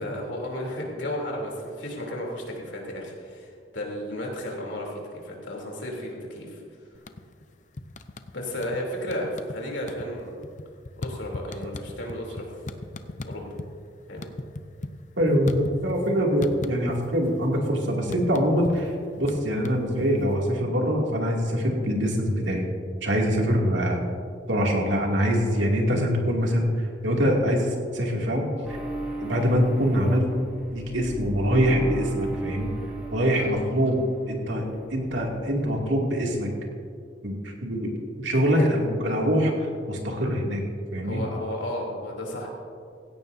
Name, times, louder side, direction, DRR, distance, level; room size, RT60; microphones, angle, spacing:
voice 1, 0.0-6.6 8.3-10.4 11.0-12.5 13.2-13.6 14.1-14.2 33.4-33.6 38.3-38.7 41.0-42.5, left 1 dB, 85° left, -2 dB, 3.3 m, -33 dB
sound 1, 6.9-7.4 7.8-8.8 9.1-9.6 9.8-13.7 14.0-16.1 16.4-17.3 17.5-20.4, left 2 dB, 45° left, 0.6 m, -36 dB
voice 2, 15.2-18.9 19.2-22.6 23.0-24.0 24.5-26.7 27.0-28.5 29.2-30.3 30.7-32.7 33.1-34.0 34.3-34.7 34.9-36.5 37.2-39.5 39.9-40.6 40.9-41.2, equal, 90° right, -1 dB, 2.6 m, -24 dB
sound 2, 28.6-34.4 34.6-35.8, right 2 dB, 5° right, 3.4 m, -36 dB
16.5 x 16.5 x 2.8 m, 2.3 s
head